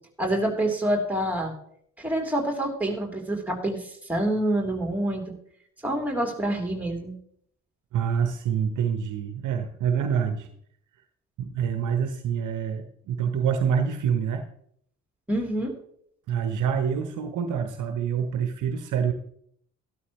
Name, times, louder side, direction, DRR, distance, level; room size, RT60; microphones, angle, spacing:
voice 1, 0.2-1.5 2.0-5.3 5.8-7.2 15.3-15.7, right 1 dB, 5° right, 1 dB, 3.2 m, -27 dB
voice 2, 7.9-10.5 11.4-14.5 16.3-19.1, right 7 dB, 55° right, 7 dB, 1.0 m, -26 dB
13.0 x 12.5 x 3.1 m, 0.65 s
figure-of-eight pair, 40°, 36 cm